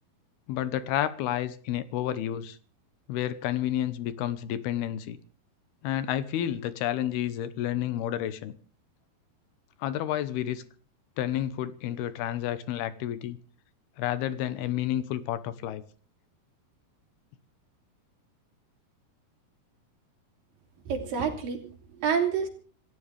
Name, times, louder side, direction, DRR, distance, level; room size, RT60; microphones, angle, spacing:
voice 1, 0.5-2.6 3.1-5.2 5.8-8.5 9.8-10.6 11.2-13.4 14.0-15.8, left 12 dB, 80° left, 2.9 m, -30 dB
voice 2, 20.9-22.5, right 6 dB, 60° right, 4.6 m, -28 dB
27.0 x 14.5 x 3.4 m
omnidirectional pair, 4.6 m